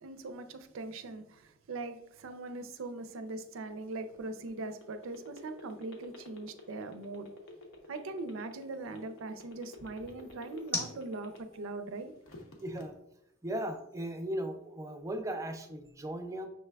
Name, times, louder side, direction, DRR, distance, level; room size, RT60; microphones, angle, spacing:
voice 1, 0.0-7.3 7.9-12.1, right 2 dB, 75° right, 0.4 m, -41 dB
sound 1, 0.9-15.2, left 1 dB, 10° left, 0.7 m, -49 dB
sound 2, 3.5-11.7 12.1-12.8, left 1 dB, 75° left, 0.8 m, -50 dB
voice 2, 12.6-13.0 13.4-16.5, right 1 dB, 15° right, 0.4 m, -37 dB
6.2 x 3.3 x 2.3 m
head